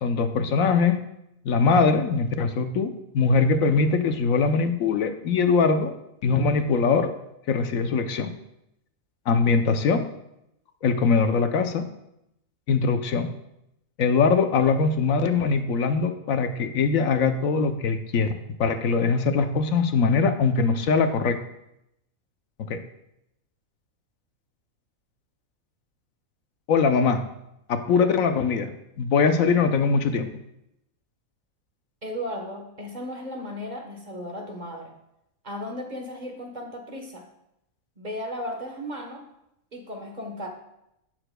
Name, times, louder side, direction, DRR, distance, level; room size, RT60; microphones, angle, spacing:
voice 1, 0.0-1.0 1.4-5.9 6.2-7.1 7.5-8.3 9.3-10.1 10.8-11.9 12.7-13.4 14.0-21.4 22.7-22.8 26.7-27.2 27.7-28.7 29.0-30.3, left 4 dB, 75° left, 8 dB, 1.1 m, -22 dB
voice 2, 32.0-34.9 35.4-37.2 38.0-39.2 39.7-40.5, equal, 35° right, 2 dB, 1.2 m, -35 dB
15.5 x 6.6 x 2.2 m, 0.83 s
omnidirectional pair, 1.4 m